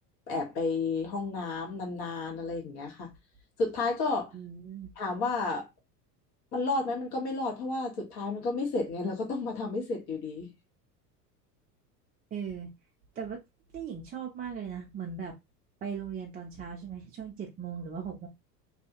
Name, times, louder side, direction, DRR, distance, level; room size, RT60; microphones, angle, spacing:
voice 1, 0.3-3.1 3.6-4.3 5.0-5.7 6.5-10.5, left 3 dB, 50° left, 1.4 m, -31 dB
voice 2, 4.3-4.9 12.3-12.7 13.2-13.4 13.7-15.3 15.8-18.3, right 7 dB, 20° right, 0.5 m, -38 dB
2.7 x 2.4 x 2.9 m
hypercardioid pair, 90°, 48 cm